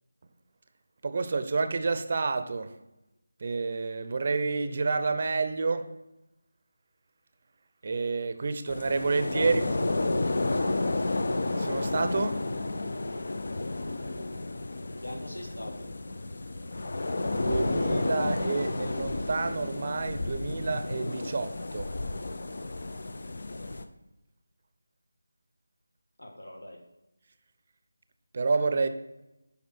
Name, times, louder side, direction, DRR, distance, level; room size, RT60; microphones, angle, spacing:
voice 1, 1.0-2.7 3.4-5.9 7.8-9.6 11.6-12.4 17.3-21.9 28.3-28.9, right 4 dB, 40° right, 10 dB, 0.6 m, -29 dB
sound 1, 8.7-23.8, left 2 dB, 50° left, 0.6 m, -31 dB
voice 2, 9.1-9.5 9.9-10.1 14.8-15.9 26.2-26.8, left 1 dB, 75° left, 3 dB, 1.8 m, -41 dB
9.2 x 5.6 x 4.4 m, 0.95 s
figure-of-eight pair, 160°, 0 cm